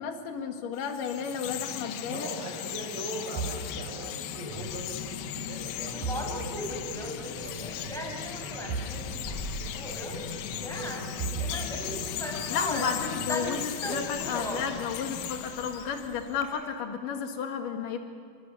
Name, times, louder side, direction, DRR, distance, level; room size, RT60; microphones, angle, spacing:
voice 1, 0.0-2.3 12.5-18.0, left 6 dB, 55° left, 5 dB, 3.0 m, -32 dB
Chirp tweet, 0.8-16.4, left 11 dB, 90° left, 3.6 m, -37 dB
voice 2, 2.0-12.1, right 2 dB, 80° right, 1 dB, 7.6 m, -42 dB
sound 1, 3.4-4.9 5.2-6.8 7.0-7.3 7.9-9.0 9.2-9.3 10.5-12.6 13.2-14.0, right 5 dB, 60° right, 2.6 m, -38 dB
Conversation, 4.5-16.4, equal, ahead, 3.3 m, -38 dB
29.5 x 24.0 x 6.8 m, 2.2 s
omnidirectional pair, 5.4 m